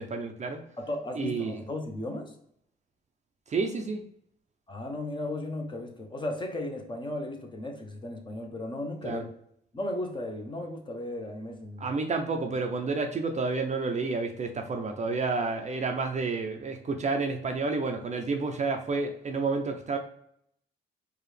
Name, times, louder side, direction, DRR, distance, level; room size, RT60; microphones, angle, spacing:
voice 1, 0.0-0.6 1.2-1.6 3.5-4.0 9.0-9.2 11.8-20.0, right 4 dB, 35° right, 4 dB, 0.5 m, -30 dB
voice 2, 0.8-2.3 4.7-9.3 9.7-11.9, left 1 dB, 25° left, 3 dB, 0.8 m, -35 dB
4.7 x 2.4 x 3.3 m, 0.70 s
cardioid pair, 90°, 20 cm